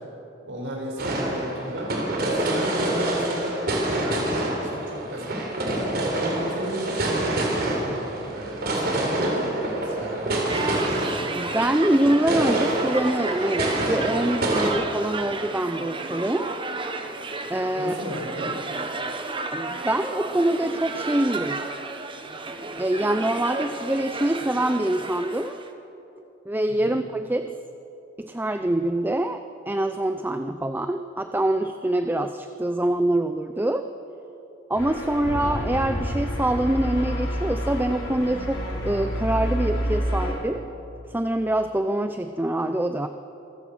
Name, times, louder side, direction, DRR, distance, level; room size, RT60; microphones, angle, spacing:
voice 1, 0.4-3.6 4.0-5.4 6.1-10.2 10.5-11.0 17.7-18.5 26.7-27.0, equal, 80° right, -2 dB, 6.4 m, -33 dB
sound 1, 1.0-14.7, right 1 dB, 55° right, 4.0 m, -27 dB
sound 2, 10.5-25.7, right 3 dB, 25° right, 1.3 m, -33 dB
voice 2, 11.3-16.5 17.5-18.0 19.5-21.7 22.8-25.6 26.5-27.5 28.2-33.9 34.7-40.6 41.1-43.1, right 1 dB, 10° right, 8 dB, 0.5 m, -25 dB
sound 3, 34.7-40.3, equal, 70° left, 5.7 m, -28 dB
26.5 x 16.5 x 6.3 m, 3.0 s
head